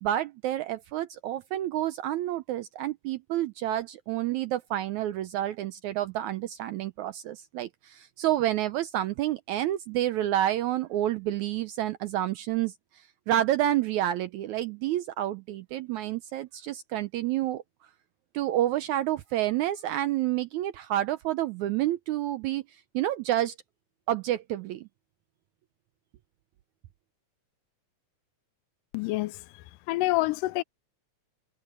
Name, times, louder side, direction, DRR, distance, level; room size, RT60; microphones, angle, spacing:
voice 1, 0.0-12.7 13.3-17.6 18.3-22.6 22.9-23.5 24.1-24.9, right 13 dB, 80° right, 1.8 m, -29 dB
voice 2, 28.9-29.4 29.9-30.6, left 19 dB, 80° left, 2.1 m, -27 dB
omnidirectional pair, 3.9 m